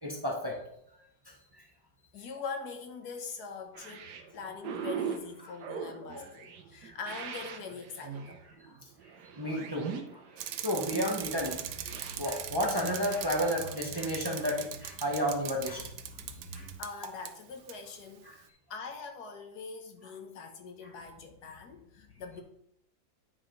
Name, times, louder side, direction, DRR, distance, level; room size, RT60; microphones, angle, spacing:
voice 1, 0.0-0.6 1.3-1.6 5.4-5.5 6.1-6.2 6.7-7.0 8.6-8.7 9.4-10.2 10.6-15.9 16.5-16.7 18.2-18.4 20.8-20.9, equal, 20° right, -1 dB, 0.8 m, -32 dB
voice 2, 2.1-8.5 16.8-22.4, left 5 dB, 60° left, 5 dB, 1.5 m, -43 dB
sound 1, 3.7-12.1, right 7 dB, 65° right, 1.3 m, -41 dB
Bicycle, 10.4-17.3 17.7-17.8, right 11 dB, 85° right, 1.3 m, -40 dB
sound 2, 11.2-16.7, right 2 dB, ahead, 2.4 m, -49 dB
9.6 x 4.8 x 3.9 m, 0.74 s
omnidirectional pair, 2.0 m